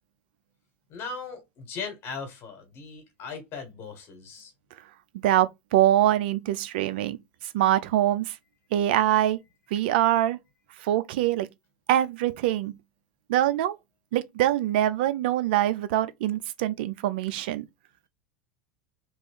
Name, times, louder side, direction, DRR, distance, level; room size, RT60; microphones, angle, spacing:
voice 1, 0.9-4.5, left 5 dB, 45° left, 1.5 m, -38 dB
voice 2, 5.2-7.2 7.5-8.4 8.7-9.4 9.7-10.4 10.8-11.5 11.9-12.8 13.3-13.8 14.1-17.6, right 13 dB, 70° right, 0.5 m, -24 dB
3.2 x 2.5 x 3.6 m
supercardioid pair, 115°, 6 cm